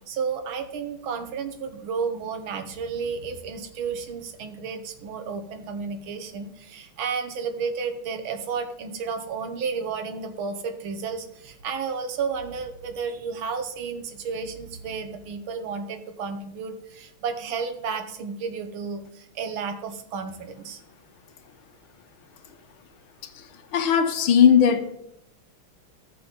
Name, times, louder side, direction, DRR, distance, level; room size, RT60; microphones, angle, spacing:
voice 1, 0.1-20.8, right 5 dB, 75° right, 6 dB, 1.9 m, -32 dB
voice 2, 23.7-24.9, left 8 dB, 75° left, 9 dB, 1.7 m, -18 dB
13.0 x 6.7 x 5.3 m, 0.80 s
omnidirectional pair, 2.3 m